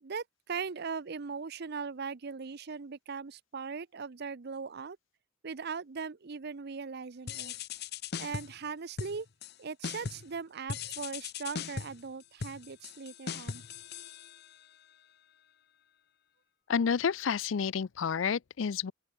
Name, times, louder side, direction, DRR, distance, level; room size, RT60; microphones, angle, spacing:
voice 1, 0.0-5.0 5.4-7.5 8.2-9.3 9.6-13.6, right 5 dB, 60° right, 0.7 m, -39 dB
sound 1, 7.3-8.6 9.0-9.5 9.8-10.3 10.7-14.7, left 6 dB, 60° left, 0.8 m, -39 dB
voice 2, 16.7-18.9, left 6 dB, 85° left, 0.5 m, -30 dB
open air
head